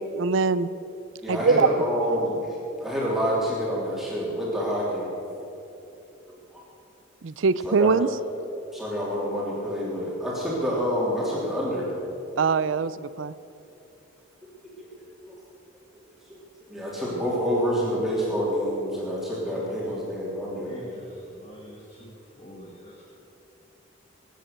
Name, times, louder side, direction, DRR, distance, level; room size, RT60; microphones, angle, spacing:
voice 1, 0.1-0.7 1.3-1.7 7.2-8.1 12.4-12.9 13.2-13.3, right 5 dB, 70° right, 16 dB, 0.5 m, -22 dB
voice 2, 1.2-2.5 2.8-5.1 6.5-6.6 7.6-7.9 8.7-11.9 15.2-15.3 16.7-20.7, equal, ahead, -7 dB, 3.2 m, -27 dB
voice 3, 19.5-19.8 20.6-22.9, equal, 30° left, -2 dB, 1.7 m, -45 dB
20.5 x 9.2 x 6.7 m, 2.8 s
head